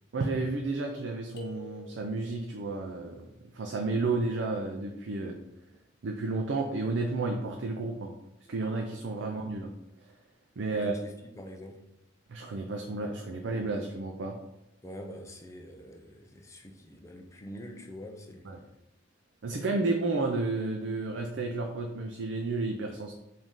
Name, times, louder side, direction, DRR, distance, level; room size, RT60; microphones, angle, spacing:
voice 1, 0.1-3.3 3.5-5.4 6.0-8.1 8.5-9.7 10.6-11.0 12.3-14.4 18.4-18.6 19.4-23.1, right 3 dB, 65° right, 0.4 m, -31 dB
sound 1, 1.4-2.5, left 2 dB, 55° left, 0.7 m, -46 dB
voice 2, 10.7-11.8 14.8-18.5, equal, 15° left, 0.4 m, -45 dB
5.0 x 2.7 x 3.6 m
head